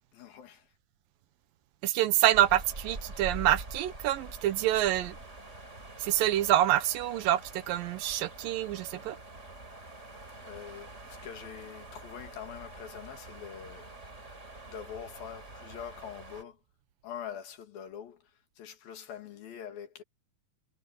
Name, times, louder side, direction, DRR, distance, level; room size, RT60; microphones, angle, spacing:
voice 1, 0.1-0.7 10.4-14.0 14.6-16.6 17.0-20.0, left 9 dB, 90° left, 4.0 m, -44 dB
voice 2, 1.8-5.2 6.0-9.2, right 13 dB, 85° right, 2.7 m, -26 dB
sound 1, 2.3-16.4, right 2 dB, 20° right, 3.9 m, -45 dB
omnidirectional pair, 4.0 m